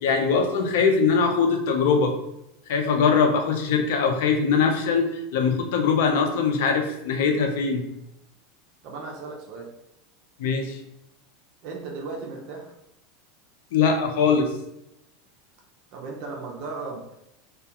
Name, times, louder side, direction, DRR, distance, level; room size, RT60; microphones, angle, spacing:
voice 1, 0.0-2.2 2.7-7.9 10.4-10.8 13.7-14.5, left 5 dB, 75° left, 4 dB, 0.4 m, -22 dB
voice 2, 8.8-9.7 11.6-12.7 15.9-17.0, right 3 dB, 55° right, -1 dB, 0.5 m, -36 dB
2.3 x 2.2 x 2.8 m, 0.85 s
supercardioid pair, 140°, 0 cm